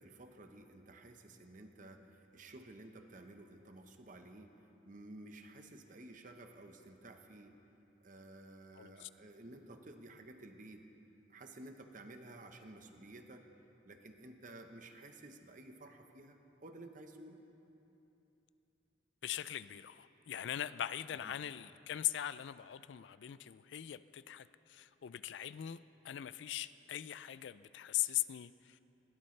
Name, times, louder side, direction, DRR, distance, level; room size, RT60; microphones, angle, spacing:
voice 1, 0.0-7.6 8.0-10.9 11.3-13.5 13.8-17.4 21.2-21.3, right 2 dB, 45° right, 5 dB, 1.0 m, -53 dB
voice 2, 8.8-9.1 19.2-25.8 26.0-28.8, left 12 dB, 70° left, 15 dB, 0.4 m, -40 dB
20.0 x 17.0 x 3.3 m, 2.9 s
head